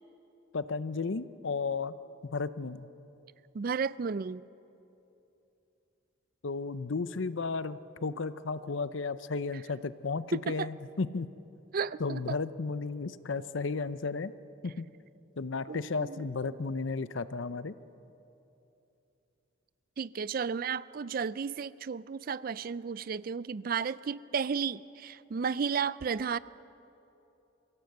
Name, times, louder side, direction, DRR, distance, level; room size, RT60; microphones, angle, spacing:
voice 1, 0.5-2.0 2.2-2.9 6.4-11.3 12.0-14.3 14.6-14.9 15.4-17.7, left 4 dB, 70° left, 14 dB, 0.6 m, -34 dB
voice 2, 3.5-4.4 10.3-10.7 11.7-12.4 15.7-16.2 16.5-16.6 20.0-26.4, right 6 dB, 45° right, 18 dB, 0.4 m, -33 dB
23.0 x 16.5 x 8.0 m, 2.9 s
head